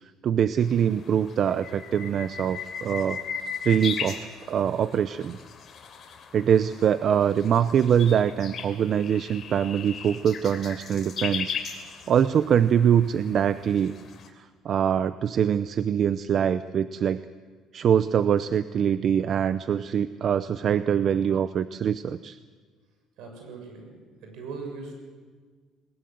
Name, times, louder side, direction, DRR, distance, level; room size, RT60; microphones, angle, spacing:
voice 1, 0.2-3.2 3.6-5.4 6.3-11.6 12.1-13.9 14.4-17.3 17.7-22.4, right 8 dB, 45° right, 13 dB, 0.6 m, -23 dB
sound 1, 0.6-14.3, left 6 dB, 40° left, 3.3 m, -38 dB
voice 2, 23.2-24.0 24.2-24.9, right 4 dB, 75° right, 3 dB, 7.2 m, -39 dB
20.5 x 20.5 x 7.9 m, 1.5 s
cardioid pair, 130°, 0 cm